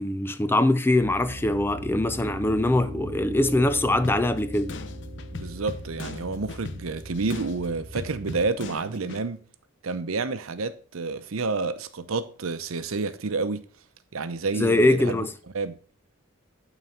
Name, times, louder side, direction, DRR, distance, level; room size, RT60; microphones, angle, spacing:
voice 1, 0.0-4.8 14.6-15.3, left 1 dB, 10° left, 0.4 m, -23 dB
Piano, 1.0-8.5, equal, 40° right, 3.2 m, -39 dB
sound 1, 4.0-9.3, left 3 dB, 60° left, 0.6 m, -40 dB
voice 2, 5.3-9.4 9.8-13.6 14.1-15.3 15.5-15.7, right 3 dB, 90° right, 0.7 m, -29 dB
9.1 x 4.0 x 5.5 m
head